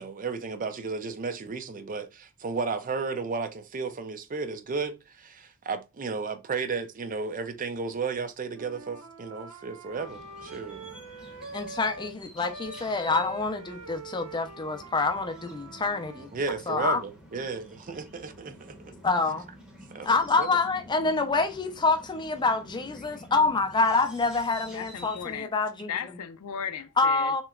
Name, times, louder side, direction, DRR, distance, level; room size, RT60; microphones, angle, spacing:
voice 1, 0.0-10.8 16.3-18.9 19.9-20.6, right 4 dB, 40° right, 0.5 m, -33 dB
Wind instrument woodwind instrument, 8.5-12.2 12.4-16.3, right 2 dB, 70° right, 0.7 m, -44 dB
sound 1, 9.9-25.4, equal, 5° right, 0.8 m, -49 dB
voice 2, 11.5-16.3 16.7-17.0 19.0-19.4 20.0-25.9 27.0-27.4, left 3 dB, 20° left, 0.5 m, -26 dB
voice 3, 24.7-25.5 25.9-27.3, left 8 dB, 85° left, 0.4 m, -36 dB
3.2 x 2.9 x 2.3 m
head